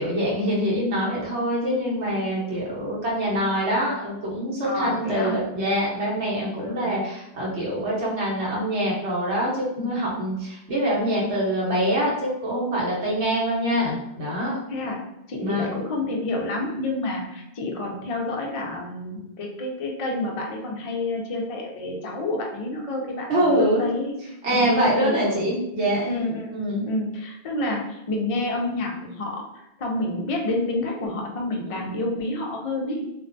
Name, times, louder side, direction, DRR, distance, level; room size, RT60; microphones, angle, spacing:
voice 1, 0.0-14.6 15.4-15.8 23.3-23.9 24.4-26.1 26.5-26.9 31.7-31.8, equal, 85° right, -5 dB, 1.2 m, -24 dB
voice 2, 4.6-5.4 6.6-6.9 9.8-9.9 14.7-24.1 24.5-25.5 26.0-26.5 26.8-33.0, left 2 dB, 60° left, 0 dB, 0.3 m, -29 dB
2.5 x 2.2 x 2.5 m, 0.85 s
omnidirectional pair, 1.1 m